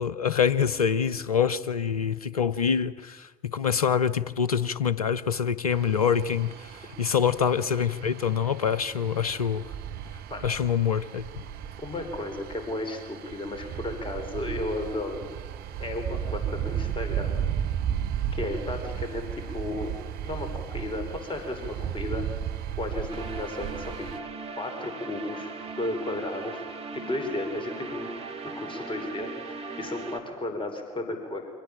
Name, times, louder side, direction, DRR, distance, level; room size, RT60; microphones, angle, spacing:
voice 1, 0.0-9.6 10.4-11.2, left 7 dB, 85° left, 0.7 m, -25 dB
sound 1, 5.7-24.2, right 9 dB, 55° right, 0.9 m, -35 dB
voice 2, 11.8-15.3 15.8-17.4 18.3-19.9 20.2-22.2 22.8-24.1 24.6-26.7 26.9-28.1 28.4-31.5, left 2 dB, 30° left, 5.3 m, -34 dB
sound 2, 23.1-30.2, right 4 dB, 35° right, 3.7 m, -39 dB
26.0 x 17.5 x 8.9 m
figure-of-eight pair, 55°, 18 cm